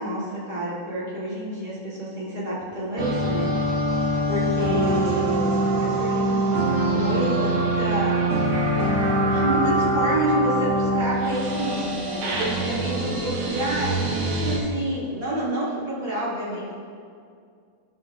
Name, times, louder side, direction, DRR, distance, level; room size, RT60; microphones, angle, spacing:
voice 1, 0.0-3.8 4.3-16.7, right 1 dB, 30° right, -10 dB, 0.7 m, -29 dB
sound 1, 3.0-14.6, right 1 dB, 90° right, 1.3 m, -24 dB
17.0 x 6.2 x 2.3 m, 2.3 s
omnidirectional pair, 4.5 m